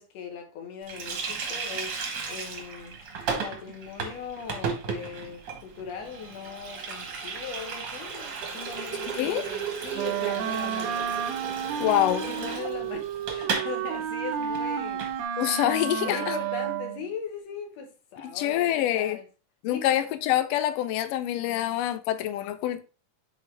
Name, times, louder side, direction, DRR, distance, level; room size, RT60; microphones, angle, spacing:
voice 1, 0.0-3.0 3.4-11.2 11.8-15.3 16.0-19.3 19.7-20.1 21.3-21.8, left 6 dB, 65° left, 2.3 m, -40 dB
Water tap faucet, 0.9-13.7 14.0-14.1 14.4-15.1, right 5 dB, 55° right, 1.3 m, -34 dB
Wind instrument woodwind instrument, 9.9-17.1, right 9 dB, 75° right, 1.7 m, -31 dB
voice 2, 11.8-12.2 15.4-16.3 18.3-19.2 19.6-22.8, left 12 dB, 85° left, 1.4 m, -26 dB
6.8 x 4.5 x 3.3 m
omnidirectional pair, 3.5 m